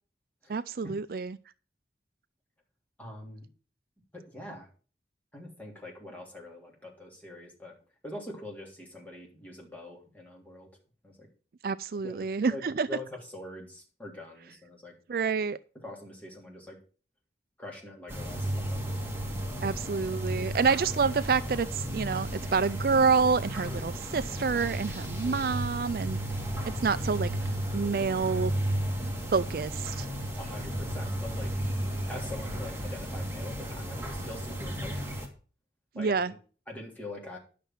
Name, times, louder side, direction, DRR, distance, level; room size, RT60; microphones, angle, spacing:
voice 1, 0.5-1.4 11.6-12.9 15.1-15.6 19.6-26.2 26.8-27.3 27.7-28.5 29.3-30.1 36.0-36.3, right 5 dB, 55° right, 0.4 m, -28 dB
voice 2, 3.0-3.5 4.1-4.7 5.3-7.7 8.0-10.7 11.0-11.3 12.0-12.6 12.9-14.9 15.8-16.8 17.6-18.8 25.2-25.4 30.4-31.5 32.1-35.1 35.9-36.4 36.7-37.4, left 1 dB, 10° left, 3.4 m, -43 dB
sound 1, 18.1-35.3, right 1 dB, 15° right, 2.1 m, -33 dB
11.0 x 6.8 x 5.8 m
head